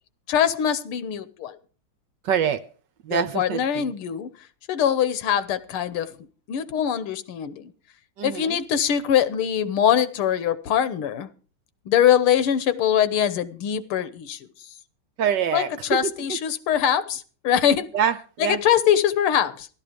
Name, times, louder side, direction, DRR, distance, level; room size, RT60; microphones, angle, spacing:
voice 1, 0.3-1.6 3.1-4.3 4.7-6.1 6.5-7.7 8.2-11.3 11.9-14.7 15.5-17.9 18.4-19.7, left 9 dB, 85° left, 1.9 m, -23 dB
voice 2, 2.2-2.6 3.0-3.9 8.2-8.6 15.2-16.4 17.9-18.6, right 8 dB, 65° right, 1.3 m, -25 dB
14.0 x 12.5 x 5.1 m
omnidirectional pair, 2.4 m